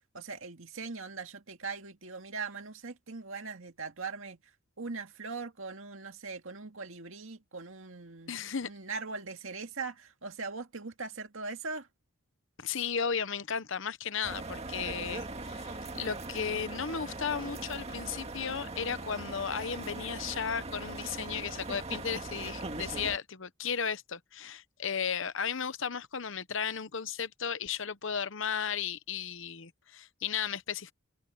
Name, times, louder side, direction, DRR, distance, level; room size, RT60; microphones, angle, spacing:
voice 1, 0.1-4.4 4.8-8.3 8.6-11.9, right 4 dB, 70° right, 2.0 m, -40 dB
voice 2, 8.3-8.7 12.6-30.9, left 7 dB, 60° left, 0.9 m, -35 dB
sound 1, 14.2-23.2, right 2 dB, 30° right, 2.0 m, -40 dB
head